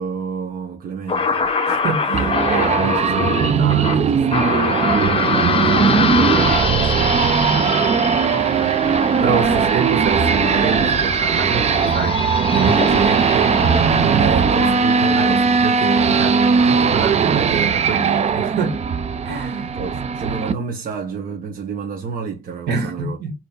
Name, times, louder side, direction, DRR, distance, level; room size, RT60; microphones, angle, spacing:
voice 1, 0.0-1.4 5.1-5.8 14.1-14.7 15.3-15.4 19.6-23.2, right 5 dB, 60° right, 1.5 m, -30 dB
sound 1, 1.1-15.3, left 4 dB, 35° left, 1.0 m, -24 dB
voice 2, 1.7-7.5 9.1-13.6 14.0-18.8 19.2-19.8 22.7-23.3, right 6 dB, 85° right, 2.5 m, -26 dB
sound 2, 2.1-20.5, right 6 dB, 40° right, 0.6 m, -18 dB
4.4 x 4.1 x 5.3 m
cardioid pair, 140°, 16 cm